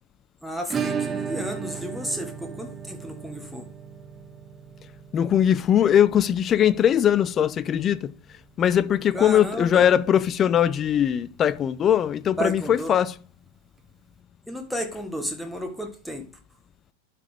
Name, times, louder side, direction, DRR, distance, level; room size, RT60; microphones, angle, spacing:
voice 1, 0.4-3.6 9.1-9.9 12.4-12.9 14.5-16.2, equal, ahead, 1.5 m, -32 dB
Acoustic guitar / Strum, 0.7-9.3 9.6-9.7 9.9-10.0 10.4-10.5 12.6-12.7 13.8-13.9, right 7 dB, 20° right, 0.7 m, -36 dB
voice 2, 5.1-8.1 8.6-13.1, left 9 dB, 25° left, 0.4 m, -20 dB
11.5 x 4.2 x 3.5 m
figure-of-eight pair, 90°, 0 cm